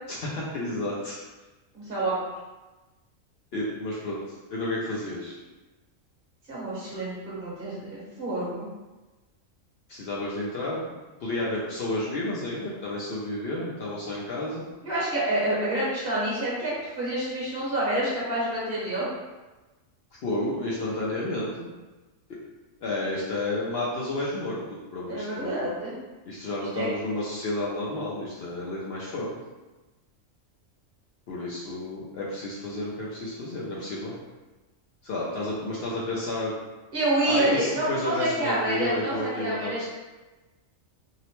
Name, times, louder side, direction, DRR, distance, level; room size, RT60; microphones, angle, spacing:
voice 1, 0.1-1.2 3.5-4.2 4.5-5.4 9.9-11.0 11.2-14.7 20.2-21.7 22.8-25.7 26.3-29.3 31.3-34.1 35.0-36.5 37.3-39.8, left 2 dB, 65° left, -6 dB, 0.7 m, -31 dB
voice 2, 1.7-2.1 6.5-8.7 14.8-19.1 25.1-26.0 26.7-26.9 36.9-39.8, right 1 dB, 50° right, -7 dB, 1.0 m, -28 dB
2.8 x 2.0 x 2.9 m, 1.2 s
omnidirectional pair, 1.3 m